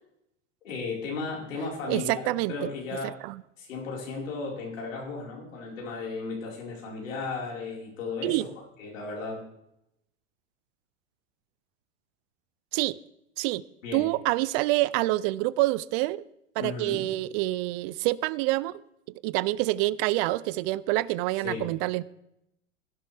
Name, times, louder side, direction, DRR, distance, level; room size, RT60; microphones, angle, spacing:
voice 1, 0.6-2.2 2.5-3.2 3.6-8.4 8.8-9.4 13.8-14.1 16.6-17.0 21.3-21.7, left 4 dB, 85° left, 4.8 m, -35 dB
voice 2, 1.9-2.5 3.2-3.4 8.2-8.5 12.7-13.0 13.4-13.6 13.9-16.2 16.6-18.7 19.2-22.0, right 18 dB, 50° right, 0.5 m, -27 dB
16.0 x 11.5 x 3.4 m
hypercardioid pair, 110°, 38 cm